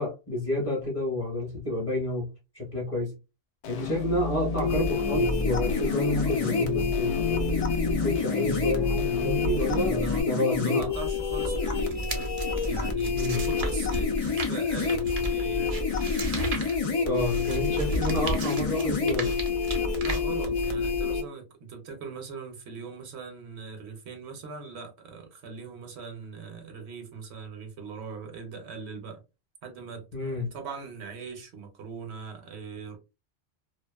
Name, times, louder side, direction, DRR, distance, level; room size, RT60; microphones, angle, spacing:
voice 1, 0.0-2.3 2.5-3.1 3.7-10.9 13.1-13.5 17.0-19.4 30.1-30.5, left 1 dB, 30° left, 0.8 m, -30 dB
sound 1, 3.6-10.2, left 3 dB, 70° left, 0.8 m, -32 dB
sound 2, 4.6-21.2, left 5 dB, 50° left, 0.4 m, -28 dB
voice 2, 9.8-12.4 12.7-15.8 19.9-29.2 29.6-33.0, right 5 dB, 70° right, 0.9 m, -41 dB
sound 3, 11.8-20.9, right 3 dB, 45° right, 0.5 m, -36 dB
2.5 x 2.2 x 2.2 m
omnidirectional pair, 1.2 m